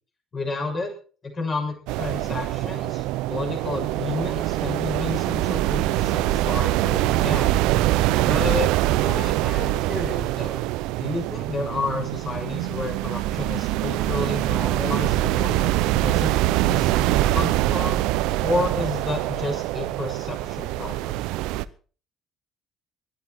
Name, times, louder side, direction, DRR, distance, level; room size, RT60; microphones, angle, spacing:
voice 1, 0.3-0.9 1.2-7.5 8.2-8.7 9.0-10.7 11.0-18.0 18.4-21.2, left 3 dB, 40° left, 1 dB, 6.9 m, -31 dB
sound 1, 1.9-21.7, right 16 dB, 70° right, 0.7 m, -24 dB
20.5 x 12.0 x 4.7 m, 0.39 s
hypercardioid pair, 55°, 0 cm